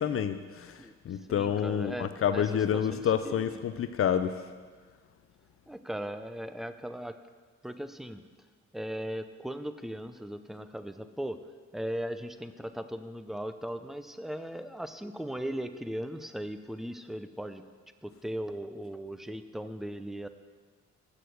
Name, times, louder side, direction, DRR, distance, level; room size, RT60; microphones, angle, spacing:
voice 1, 0.0-0.7 1.1-4.3, left 8 dB, 45° left, 10 dB, 0.5 m, -28 dB
voice 2, 1.3-2.4 2.7-3.6 5.7-7.1 7.6-8.2 8.7-11.4 11.7-17.6 18.0-20.3, equal, ahead, 10 dB, 0.5 m, -38 dB
8.4 x 6.6 x 7.8 m, 1.5 s
cardioid pair, 90°, 30 cm